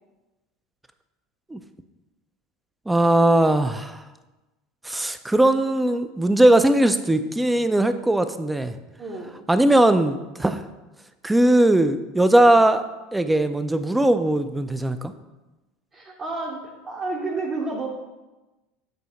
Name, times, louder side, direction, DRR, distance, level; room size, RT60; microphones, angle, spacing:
voice 1, 2.9-4.0 4.8-8.8 9.5-10.6 11.2-12.8 13.1-15.1, right 1 dB, 10° right, 10 dB, 0.4 m, -19 dB
voice 2, 9.0-9.3 15.9-17.9, right 3 dB, 35° right, -4 dB, 1.1 m, -30 dB
7.7 x 2.7 x 4.5 m, 1.1 s
hypercardioid pair, 85°, 0 cm